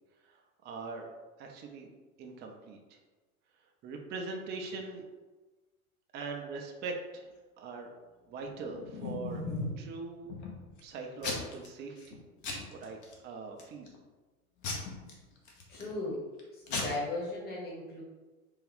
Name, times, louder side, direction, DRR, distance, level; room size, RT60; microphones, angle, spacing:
voice 1, 0.6-1.1 1.4-1.9 2.2-2.8 3.8-5.0 6.1-7.3 7.6-7.9 8.3-9.4 9.8-10.3 10.8-12.2 12.7-13.9, right 3 dB, 25° right, 2 dB, 0.4 m, -41 dB
Packing tape duct tape / Tearing, 8.4-9.8 10.3-10.8 11.2-11.7 12.0-12.2 12.4-13.1 13.6-14.0 14.6-15.9 16.4-16.5 16.7-16.8, left 3 dB, 40° left, 0.9 m, -37 dB
voice 2, 15.7-16.2 16.5-18.0, left 2 dB, 20° left, -5 dB, 1.3 m, -37 dB
3.5 x 2.3 x 3.4 m, 1.2 s
hypercardioid pair, 95°, 43 cm